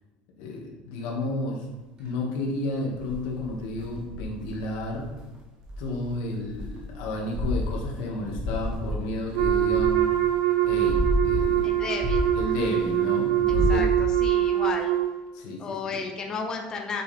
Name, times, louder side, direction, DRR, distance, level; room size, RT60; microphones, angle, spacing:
voice 1, 0.4-1.6 2.0-5.1 5.8-10.0 10.6-11.8 12.3-13.9 15.3-16.0, left 2 dB, 80° left, -1 dB, 2.1 m, -32 dB
sound 1, 2.9-5.2 5.6-10.2 10.6-12.9 13.3-14.2, left 1 dB, 25° right, 1.6 m, -30 dB
Wind instrument woodwind instrument, 9.3-15.1, right 12 dB, 85° right, 1.1 m, -23 dB
voice 2, 11.6-12.3 13.7-14.9 15.6-17.0, left 4 dB, 20° left, 2 dB, 0.9 m, -33 dB
8.8 x 6.4 x 3.5 m, 1.2 s
cardioid pair, 175°, 3 cm